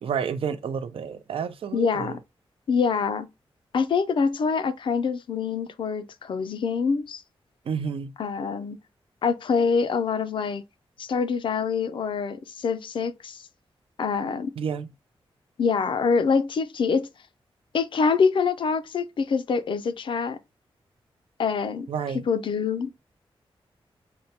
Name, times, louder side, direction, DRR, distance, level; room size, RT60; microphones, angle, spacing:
voice 1, 0.0-2.2 7.7-8.1 14.6-14.9 21.9-22.3, right 7 dB, 70° right, 0.4 m, -30 dB
voice 2, 1.7-2.2 2.7-3.3 3.7-7.2 8.2-8.8 9.2-10.6 11.0-13.4 14.0-14.5 15.6-17.1 17.7-20.4 21.4-21.9 22.3-22.9, left 5 dB, 60° left, 0.4 m, -25 dB
4.3 x 2.2 x 2.8 m
wide cardioid pair, 170°, 10 cm